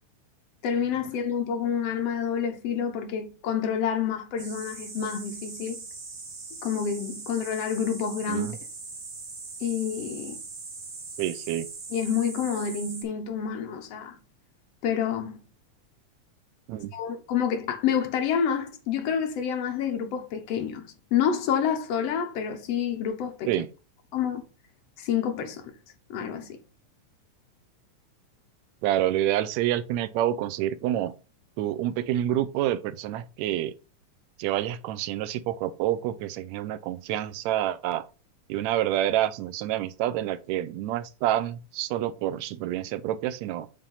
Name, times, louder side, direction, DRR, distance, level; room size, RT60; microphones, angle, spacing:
voice 1, 0.6-5.8 6.6-8.5 9.6-10.4 11.9-14.2 14.8-15.4 16.9-23.5 24.1-24.4 25.0-25.7 26.1-26.5, left 7 dB, 65° left, 2.0 m, -28 dB
sound 1, 4.4-13.0, right 3 dB, 45° right, 2.4 m, -41 dB
voice 2, 11.2-11.7 16.7-16.9 23.5-23.7 28.8-31.1 31.6-33.7 34.4-38.1 38.5-43.7, right 12 dB, 80° right, 1.8 m, -28 dB
7.4 x 3.4 x 5.5 m
omnidirectional pair, 3.3 m